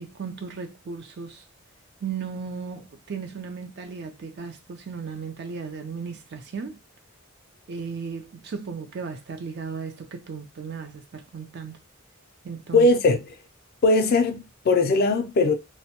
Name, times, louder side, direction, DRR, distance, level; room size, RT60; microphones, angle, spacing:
voice 1, 0.0-1.4 2.0-6.8 7.7-11.8 12.4-12.9, right 5 dB, 50° right, 0.4 m, -35 dB
voice 2, 12.7-13.3 13.8-15.5, left 2 dB, 45° left, 0.4 m, -20 dB
2.1 x 2.1 x 2.8 m
head